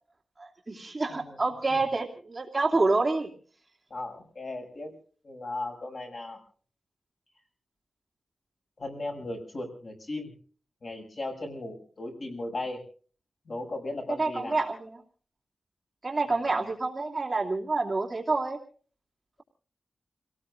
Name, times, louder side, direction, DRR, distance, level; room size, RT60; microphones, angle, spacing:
voice 1, 0.4-3.3 14.2-15.0 16.0-18.6, right 3 dB, 25° right, -1 dB, 2.6 m, -28 dB
voice 2, 3.9-4.9 5.2-6.4 8.8-10.3 10.8-12.8 13.4-14.6 16.6-16.7, left 2 dB, 50° left, 3 dB, 6.8 m, -37 dB
28.5 x 18.5 x 2.5 m, 0.42 s
wide cardioid pair, 150°, 0 cm